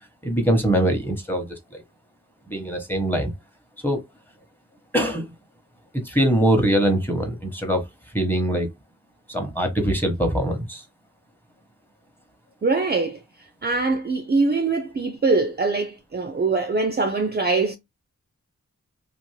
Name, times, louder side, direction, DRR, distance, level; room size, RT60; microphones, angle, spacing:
voice 1, 0.2-1.8 2.5-3.3 3.8-4.0 4.9-5.3 5.9-7.8 8.1-8.7 9.3-10.8, right 1 dB, 5° left, 0.9 m, -22 dB
voice 2, 12.6-13.2 13.6-17.8, right 3 dB, 35° right, 0.4 m, -23 dB
2.6 x 2.5 x 3.1 m
wide cardioid pair, 75°, 30 cm